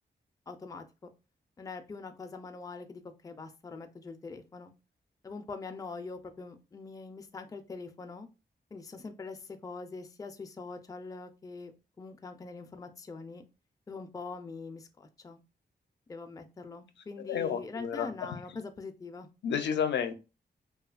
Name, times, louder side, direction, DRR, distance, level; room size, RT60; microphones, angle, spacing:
voice 1, 0.5-0.8 1.6-4.7 5.2-8.3 8.7-11.7 12.0-13.4 13.9-15.4 16.1-19.3, left 4 dB, 20° left, 7 dB, 0.3 m, -43 dB
voice 2, 17.2-18.4 19.4-20.1, left 7 dB, 85° left, 7 dB, 0.4 m, -31 dB
2.7 x 2.2 x 2.3 m, 0.29 s
cardioid pair, 90°, 18 cm